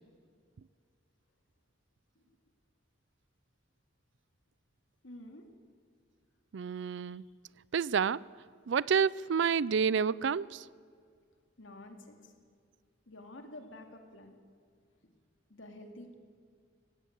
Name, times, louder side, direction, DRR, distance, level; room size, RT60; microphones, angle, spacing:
voice 1, 5.0-5.5 7.0-7.3 11.6-12.3 13.1-14.4 15.0-15.2 15.5-16.1, left 1 dB, 80° left, 2.7 m, -50 dB
voice 2, 6.5-7.2 7.7-8.2 8.7-10.7, right 6 dB, 65° right, 0.4 m, -29 dB
19.5 x 17.5 x 8.2 m
head